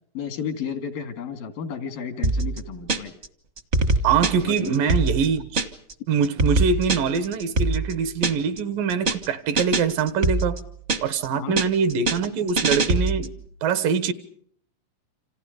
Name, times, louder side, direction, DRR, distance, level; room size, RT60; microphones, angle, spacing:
voice 1, 0.2-3.1 4.5-4.9 11.3-11.6, left 7 dB, 90° left, 3.9 m, -32 dB
sound 1, 2.2-3.3 3.6-5.9 6.2-8.6 8.9-9.3 9.6-11.3 11.6-13.4, right 2 dB, 50° right, 0.8 m, -24 dB
voice 2, 4.0-5.6 6.1-10.6 11.0-13.3 13.6-14.1, right 6 dB, 80° right, 3.1 m, -23 dB
28.5 x 27.0 x 5.2 m
omnidirectional pair, 3.9 m